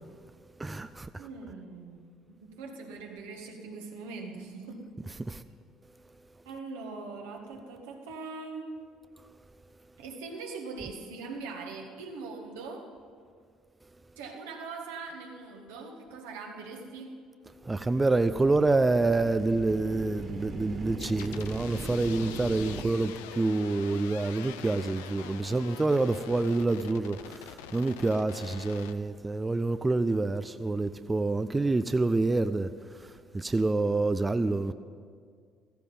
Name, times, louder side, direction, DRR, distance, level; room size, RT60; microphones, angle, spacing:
voice 1, 0.6-1.3 5.3-5.4 17.6-32.7 33.3-34.7, right 2 dB, 20° right, 0.5 m, -27 dB
voice 2, 1.2-2.0 2.3-5.0 6.5-8.8 10.0-12.9 14.2-17.2, right 4 dB, 80° right, 1.8 m, -41 dB
sound 1, 17.7-22.9, right 3 dB, 50° right, 2.3 m, -40 dB
sound 2, 21.0-28.9, left 10 dB, 80° left, 0.6 m, -45 dB
15.0 x 14.5 x 5.5 m
hypercardioid pair, 55°, 0 cm